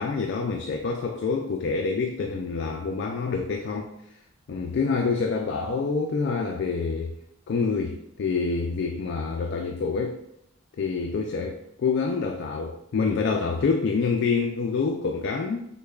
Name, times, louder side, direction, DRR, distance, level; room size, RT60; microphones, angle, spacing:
voice 1, 0.0-3.9 4.5-7.2 7.5-10.2 10.8-15.7, left 4 dB, 60° left, 3 dB, 0.3 m, -27 dB
6.4 x 2.2 x 2.3 m, 0.79 s
head